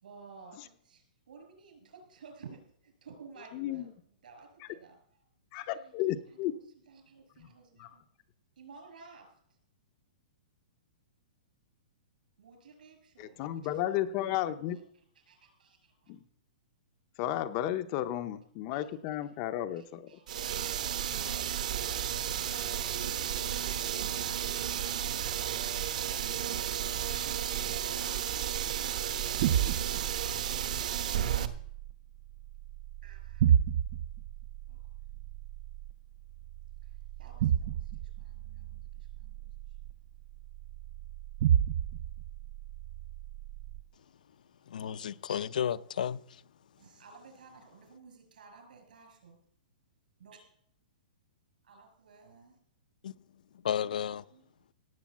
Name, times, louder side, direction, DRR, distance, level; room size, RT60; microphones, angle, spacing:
voice 1, 0.0-5.3 5.5-8.0 8.6-9.3 12.4-16.1 18.7-19.0 19.3-19.4 19.7-20.7 27.2-28.5 28.8-30.1 33.0-33.5 34.7-34.8 35.1-35.2 36.8-39.5 39.8-40.0 46.8-49.4 50.2-50.4 51.6-52.6 54.0-54.1 54.3-54.4, right 5 dB, 70° right, 6.1 m, -55 dB
voice 2, 3.5-3.9 4.6-4.7 5.5-6.5 7.8-7.9 13.2-14.8 16.1-16.2 17.2-20.2, left 13 dB, 25° left, 0.6 m, -33 dB
sound 1, 20.3-31.5, right 10 dB, 55° right, 1.2 m, -33 dB
sound 2, 27.0-43.8, right 10 dB, 30° right, 0.5 m, -33 dB
voice 3, 44.7-46.4 53.0-53.1 53.6-54.2, left 9 dB, 65° left, 0.6 m, -33 dB
17.0 x 8.3 x 7.2 m
hypercardioid pair, 180°, 5 cm